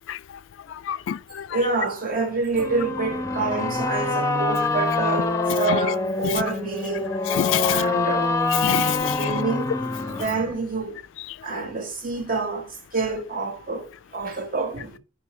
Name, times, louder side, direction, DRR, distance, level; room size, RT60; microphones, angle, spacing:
voice 1, 0.9-1.5 5.7-5.8 6.2-6.4 7.3-7.8 8.6-9.3, left 10 dB, 90° left, 0.3 m, -26 dB
voice 2, 1.5-7.1 7.6-8.3 9.2-9.7 10.1-11.0 11.4-15.0, right 4 dB, 50° right, 1.5 m, -27 dB
sound 1, 2.5-10.5, left 3 dB, 15° left, 0.5 m, -25 dB
5.0 x 4.9 x 4.2 m
head